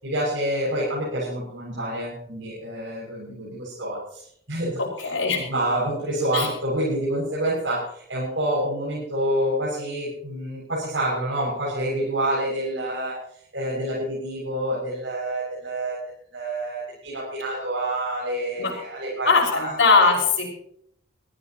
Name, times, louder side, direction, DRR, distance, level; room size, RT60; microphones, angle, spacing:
voice 1, 0.0-4.2 4.5-5.1 5.5-13.2 13.5-16.0 16.3-19.7 20.0-20.1, right 1 dB, 75° right, -6 dB, 6.9 m, -27 dB
voice 2, 4.8-5.4 6.3-6.5 18.6-18.7 19.3-20.5, left 4 dB, 85° left, -3 dB, 5.7 m, -20 dB
23.0 x 15.0 x 3.1 m, 0.68 s
head